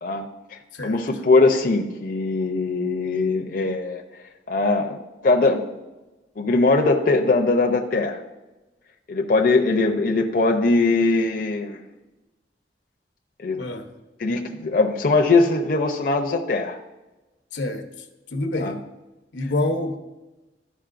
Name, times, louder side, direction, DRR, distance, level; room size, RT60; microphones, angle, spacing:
voice 1, 0.0-4.0 4.5-5.0 5.2-5.6 6.4-8.2 9.1-11.8 13.4-13.6 14.2-16.8 18.5-18.7, left 3 dB, 50° left, 2 dB, 0.6 m, -21 dB
voice 2, 0.7-1.0 13.6-13.9 17.5-17.9 18.3-18.8 19.3-20.0, left 2 dB, 85° left, 6 dB, 0.9 m, -27 dB
13.0 x 5.2 x 2.5 m, 1.1 s
head